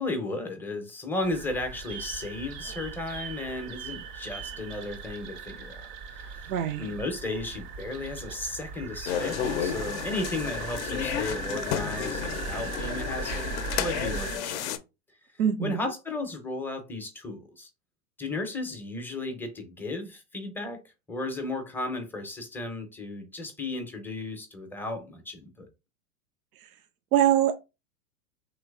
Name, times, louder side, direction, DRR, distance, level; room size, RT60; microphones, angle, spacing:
voice 1, 0.0-5.8 6.1-6.4 6.8-14.7 15.6-17.7 18.2-20.8 21.1-25.7, left 2 dB, 5° left, 0.5 m, -34 dB
sound 1, 1.2-14.4, right 5 dB, 40° right, 0.5 m, -38 dB
voice 2, 6.5-6.9 15.4-15.9 26.6-26.7 27.1-27.5, right 11 dB, 85° right, 0.5 m, -24 dB
sound 2, 9.1-14.8, left 9 dB, 55° left, 0.5 m, -32 dB
3.2 x 2.9 x 2.3 m
hypercardioid pair, 105°, 43 cm